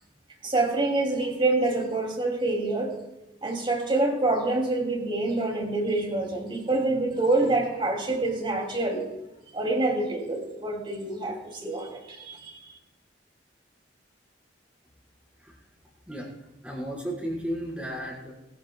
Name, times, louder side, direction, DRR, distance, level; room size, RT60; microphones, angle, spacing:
voice 1, 0.4-2.9 3.4-9.0 9.5-12.6, right 2 dB, 30° right, 1 dB, 2.7 m, -26 dB
voice 2, 16.1-18.3, equal, 5° right, -5 dB, 4.6 m, -34 dB
21.5 x 14.5 x 2.3 m, 0.97 s
head